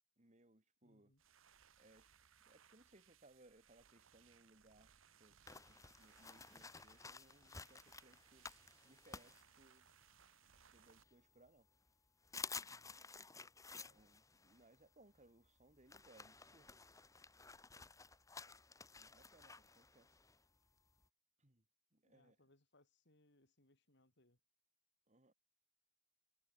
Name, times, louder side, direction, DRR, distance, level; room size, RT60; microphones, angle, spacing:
voice 1, 0.2-1.1 1.8-2.1 2.5-4.9 5.2-5.4 5.7-9.9 10.7-11.7 13.8-16.8 19.0-20.2 21.4-21.6 21.9-22.4 25.1-25.3, right 2 dB, 35° right, 2.6 m, -68 dB
voice 2, 0.8-1.2 12.6-13.0 22.0-24.4, left 1 dB, 60° left, 4.2 m, -73 dB
sound 1, 1.1-11.0, right 8 dB, 80° right, 1.3 m, -69 dB
sound 2, 5.5-10.1 10.6-11.5 11.9-12.0 12.2-21.0, left 4 dB, 15° left, 1.2 m, -54 dB
head